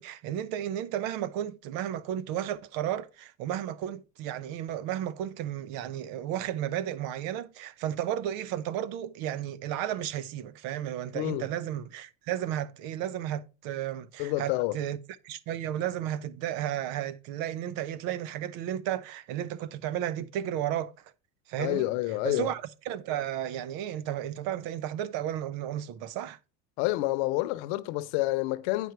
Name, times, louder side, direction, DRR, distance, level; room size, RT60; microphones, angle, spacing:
voice 1, 0.0-15.0 15.2-20.9 21.5-21.9 22.2-26.4, right 11 dB, 70° right, 0.9 m, -33 dB
voice 2, 11.1-11.5 14.2-14.8 21.6-22.5 26.8-28.9, left 18 dB, 75° left, 0.9 m, -28 dB
9.2 x 5.2 x 4.6 m
supercardioid pair, 105°, 36 cm